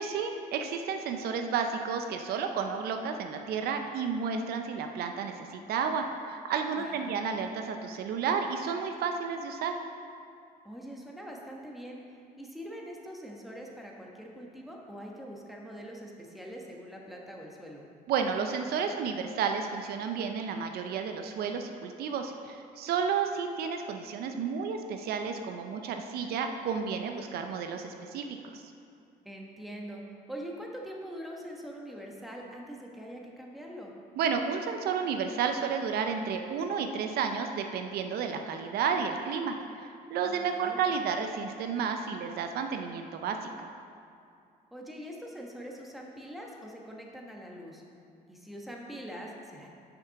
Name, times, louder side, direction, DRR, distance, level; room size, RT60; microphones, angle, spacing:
voice 1, 0.0-9.8 18.1-28.6 34.2-39.6 40.1-43.7, right 6 dB, 75° right, 5 dB, 0.6 m, -32 dB
voice 2, 6.7-7.2 10.6-12.0 12.4-17.8 29.2-30.0 30.3-33.9 40.2-40.8 44.7-47.8 48.3-49.7, equal, ahead, -1 dB, 1.3 m, -43 dB
6.8 x 5.9 x 5.8 m, 2.5 s
cardioid pair, 90°, 16 cm